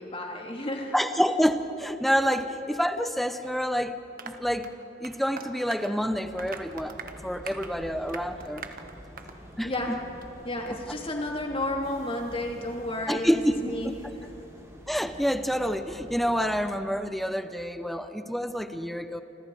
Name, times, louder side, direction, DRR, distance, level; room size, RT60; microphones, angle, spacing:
voice 1, 0.0-1.1 2.4-2.5 9.6-10.0 10.4-14.3, left 1 dB, 30° left, 1 dB, 3.2 m, -32 dB
voice 2, 0.9-4.0 4.3-4.7 5.0-7.0 7.2-8.6 9.6-10.0 13.1-13.7 14.0-14.1 14.9-19.2, equal, ahead, 9 dB, 0.8 m, -27 dB
Applause, 4.2-9.4 9.7-9.9 10.2-10.3 10.7-10.8, right 5 dB, 50° right, 1.4 m, -43 dB
sound 1, 6.3-16.6, equal, 15° right, 3.2 m, -47 dB
29.5 x 26.0 x 5.0 m, 2.9 s
head